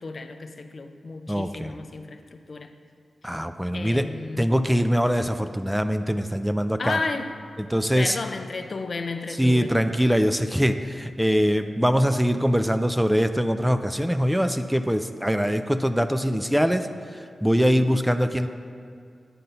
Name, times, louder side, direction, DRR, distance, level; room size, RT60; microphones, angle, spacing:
voice 1, 0.0-2.7 3.7-4.7 6.8-7.3 8.0-9.8, left 3 dB, 55° left, 7 dB, 0.5 m, -33 dB
voice 2, 1.3-1.8 3.2-4.1 4.4-7.0 7.7-8.2 9.4-16.9 17.4-18.5, equal, 5° right, 9 dB, 0.4 m, -23 dB
10.0 x 4.0 x 5.6 m, 2.3 s
cardioid pair, 55°, 0 cm